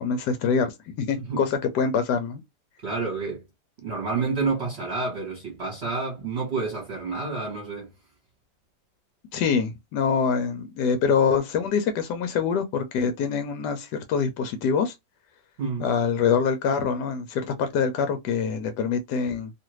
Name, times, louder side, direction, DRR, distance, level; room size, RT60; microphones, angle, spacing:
voice 1, 0.0-2.4 9.3-14.9 15.8-19.5, left 6 dB, 85° left, 1.2 m, -25 dB
voice 2, 2.8-3.4 3.8-7.9 15.6-15.9, right 4 dB, 45° right, 1.1 m, -29 dB
2.8 x 2.4 x 3.0 m
omnidirectional pair, 1.8 m